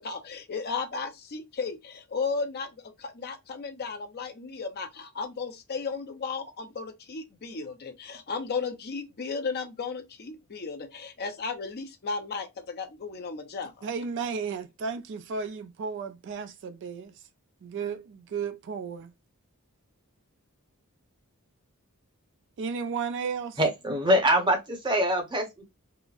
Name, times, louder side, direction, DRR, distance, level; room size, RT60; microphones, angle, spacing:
voice 1, 0.0-13.9, left 4 dB, 45° left, 0.6 m, -35 dB
voice 2, 13.8-17.1 17.6-19.1 22.6-23.6, right 5 dB, 55° right, 0.3 m, -33 dB
voice 3, 23.6-25.6, equal, 20° right, 0.7 m, -24 dB
3.8 x 2.0 x 2.4 m
head